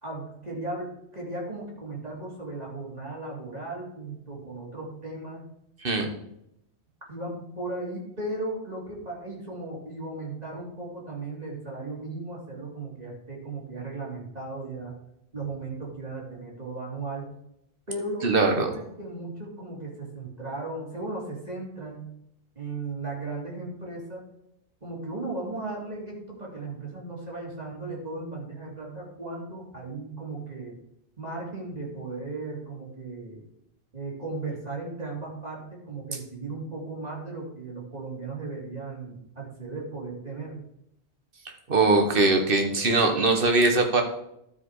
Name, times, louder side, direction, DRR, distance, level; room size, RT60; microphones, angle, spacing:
voice 1, 0.0-5.4 7.1-14.9 15.3-17.3 17.9-22.1 22.5-24.2 24.8-30.7 31.2-33.4 33.9-40.6, right 2 dB, 35° right, -4 dB, 2.7 m, -36 dB
voice 2, 18.2-18.7 41.7-44.0, right 3 dB, 55° right, 4 dB, 1.4 m, -21 dB
12.0 x 5.0 x 4.7 m, 0.78 s
omnidirectional pair, 1.1 m